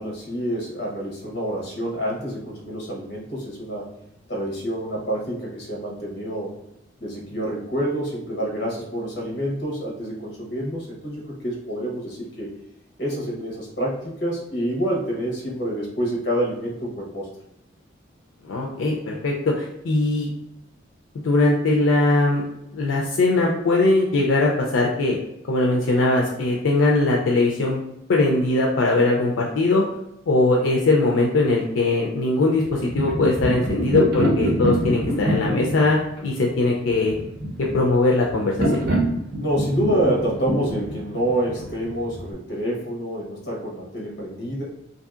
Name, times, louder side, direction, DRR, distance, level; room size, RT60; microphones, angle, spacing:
voice 1, 0.0-3.9 4.3-6.5 7.0-12.5 13.0-17.3 39.4-44.6, right 1 dB, 60° left, -2 dB, 1.0 m, -27 dB
voice 2, 18.4-20.3 21.2-22.4 22.7-25.2 25.5-27.8 28.1-29.8 30.3-37.1 37.7-38.8, left 2 dB, 90° left, -1 dB, 0.4 m, -20 dB
sound 1, 32.6-42.3, equal, 55° right, 0.7 m, -25 dB
2.8 x 2.7 x 2.4 m, 0.83 s
head